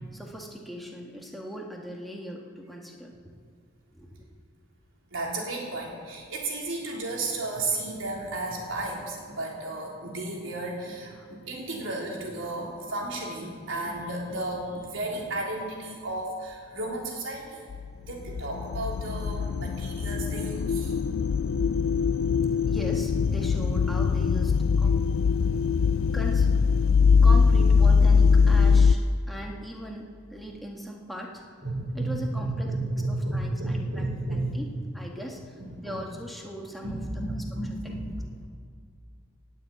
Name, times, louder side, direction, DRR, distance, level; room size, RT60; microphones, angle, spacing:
voice 1, 0.1-3.1 3.9-4.3 11.2-11.3 22.7-25.4 26.1-26.5 27.2-31.4 31.9-34.7 34.9-37.0 37.3-37.4 37.7-37.8, equal, ahead, -1 dB, 1.7 m, -39 dB
voice 2, 5.1-17.6 18.0-21.0 25.0-25.1 25.4-26.0 27.1-27.2 31.6-34.6 35.6-36.0 36.8-38.5, right 2 dB, 75° right, -2 dB, 3.6 m, -33 dB
sound 1, 17.7-28.9, left 5 dB, 75° left, 0.4 m, -22 dB
19.0 x 7.6 x 8.4 m, 2.1 s
head